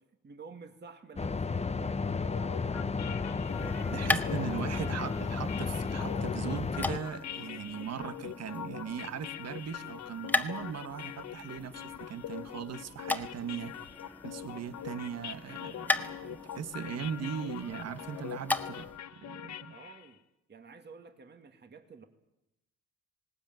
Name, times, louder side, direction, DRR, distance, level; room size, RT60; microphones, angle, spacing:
voice 1, 0.0-4.1 19.7-20.2 20.5-22.1, right 5 dB, 35° right, 7 dB, 2.1 m, -51 dB
sound 1, 1.2-7.0, left 4 dB, 20° left, 0.8 m, -33 dB
sound 2, 2.2-20.1, left 10 dB, 65° left, 1.2 m, -43 dB
sound 3, 3.4-19.0, left 2 dB, 5° left, 1.5 m, -38 dB
voice 2, 3.9-13.7 14.2-18.9 19.2-19.7, right 7 dB, 60° right, 12 dB, 1.6 m, -39 dB
19.5 x 18.5 x 9.2 m, 0.91 s
cardioid pair, 90°, 30 cm